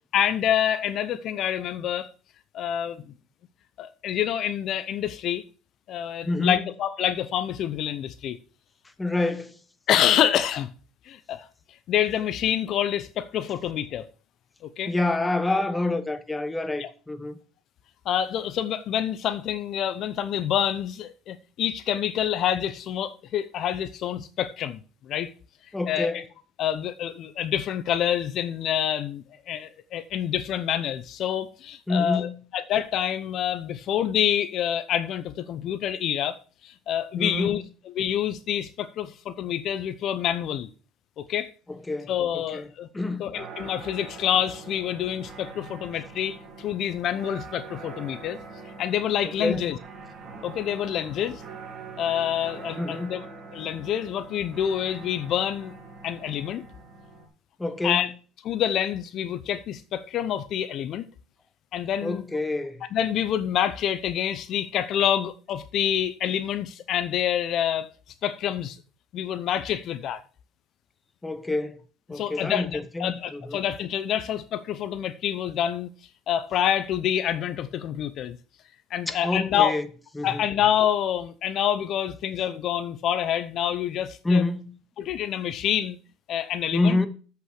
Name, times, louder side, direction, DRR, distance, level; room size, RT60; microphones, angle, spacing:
voice 1, 0.1-2.1 2.5-3.0 3.8-5.4 5.9-8.4 9.9-10.7 11.1-11.5 11.9-14.0 14.6-14.9 16.8-16.9 18.1-24.8 25.1-25.3 25.9-26.2 26.6-36.4 36.6-37.6 38.0-40.7 41.2-41.5 42.1-42.9 43.2-48.4 48.8-49.8 50.4-51.4 52.0-53.2 53.5-55.7 56.0-56.6 57.8-58.1 58.4-61.0 61.7-62.2 62.9-67.9 68.2-68.8 69.1-70.2 72.1-75.9 76.3-78.4 78.9-79.7 80.2-84.4 85.0-86.0 86.3-87.0, left 10 dB, 50° left, 0.6 m, -27 dB
voice 2, 6.2-6.7 9.0-9.6 14.9-17.4 25.7-26.3 31.9-32.4 37.2-37.6 41.7-42.7 42.9-43.3 49.2-49.7 52.8-53.3 57.6-58.1 62.0-62.8 71.2-71.8 72.1-73.6 79.1-79.9 80.1-80.4 84.2-84.8 86.7-87.1, left 2 dB, 10° left, 1.1 m, -27 dB
sound 1, 43.3-57.3, right 4 dB, 40° right, 2.3 m, -43 dB
7.6 x 5.7 x 6.4 m
supercardioid pair, 105°, 0 cm